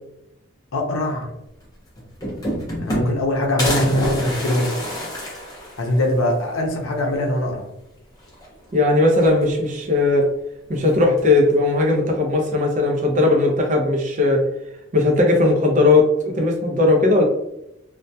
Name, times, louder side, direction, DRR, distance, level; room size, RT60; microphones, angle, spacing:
voice 1, 0.7-1.3 2.8-4.7 5.8-7.6, left 1 dB, 80° left, 1 dB, 0.6 m, -22 dB
sound 1, 1.6-1.7 2.0-3.3 3.6-6.2 6.6-6.7 7.0-7.1 8.2-8.7 9.0-9.8 10.8-11.4, equal, 20° left, 0.5 m, -28 dB
voice 2, 8.7-10.3 10.7-14.4 14.9-17.2, left 2 dB, 35° right, 1 dB, 0.5 m, -17 dB
2.2 x 2.1 x 2.6 m, 0.86 s
head